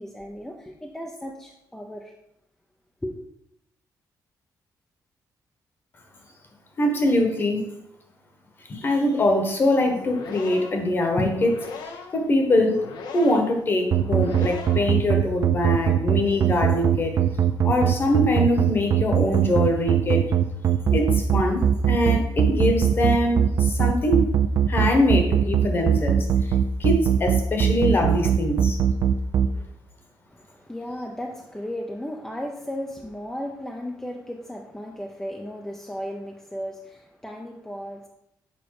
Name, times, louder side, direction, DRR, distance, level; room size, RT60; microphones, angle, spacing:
voice 1, 0.0-2.1 3.0-3.2 30.3-38.1, equal, 5° left, 1 dB, 0.5 m, -35 dB
voice 2, 6.8-7.7 8.7-11.6 12.1-12.9 13.1-17.1 17.6-20.2 20.9-24.3 24.7-26.5 26.8-28.8, left 1 dB, 30° left, 4 dB, 1.1 m, -23 dB
sound 1, 9.8-15.0, left 5 dB, 80° left, 0.9 m, -39 dB
sound 2, 13.9-29.5, right 9 dB, 45° right, 0.4 m, -20 dB
7.0 x 5.1 x 4.7 m, 0.82 s
wide cardioid pair, 175°, 7 cm